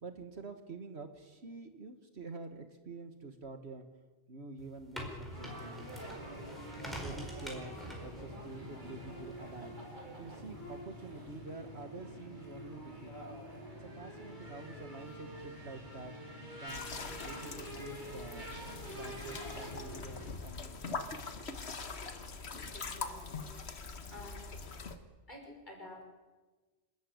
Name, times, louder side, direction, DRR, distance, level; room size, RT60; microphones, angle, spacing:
voice 1, 0.0-3.8 4.3-6.3 6.8-7.7 8.0-9.7 10.2-13.1 13.8-16.1 16.6-16.9 17.2-18.5 19.0-21.1, right 3 dB, 60° right, 7 dB, 1.9 m, -48 dB
sound 1, 4.6-10.8, equal, ahead, 4.7 m, -47 dB
sound 2, 5.3-20.3, equal, 40° right, 4.4 m, -46 dB
sound 3, 16.7-25.0, left 4 dB, 60° left, 1.7 m, -43 dB
voice 2, 22.7-23.5 24.1-24.5 25.3-26.0, left 1 dB, 40° left, 0 dB, 6.1 m, -50 dB
26.5 x 13.5 x 9.5 m, 1.3 s
omnidirectional pair, 1.3 m